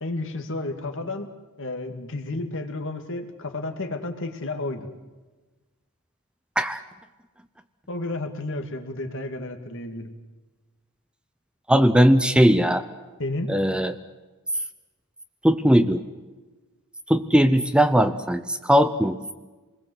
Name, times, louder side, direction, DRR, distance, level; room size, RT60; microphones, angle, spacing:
voice 1, 0.0-1.3 1.6-4.9 7.9-10.1 13.2-13.5, left 2 dB, 60° left, 6 dB, 2.4 m, -31 dB
voice 2, 11.7-12.9 13.5-13.9 15.4-16.0 17.1-19.3, equal, 5° right, 10 dB, 0.8 m, -19 dB
27.5 x 20.5 x 8.1 m, 1.2 s
head